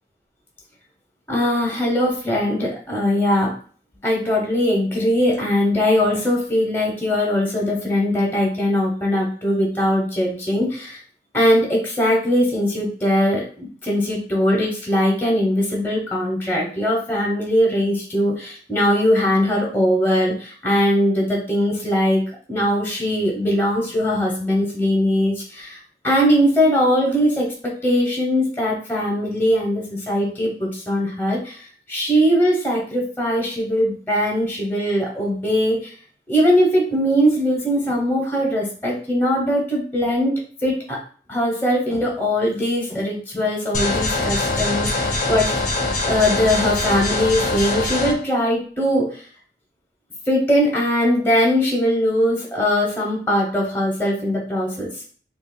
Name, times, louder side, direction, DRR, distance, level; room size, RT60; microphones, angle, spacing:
voice 1, 1.3-3.5 4.0-11.0 11.3-22.2 22.5-31.6 31.9-35.9 36.3-41.0 41.3-45.5 46.1-49.2 50.3-54.9, equal, 15° left, -2 dB, 0.9 m, -20 dB
sound 1, 43.7-48.1, left 2 dB, 45° left, 0.7 m, -23 dB
5.7 x 2.4 x 2.2 m, 0.43 s
head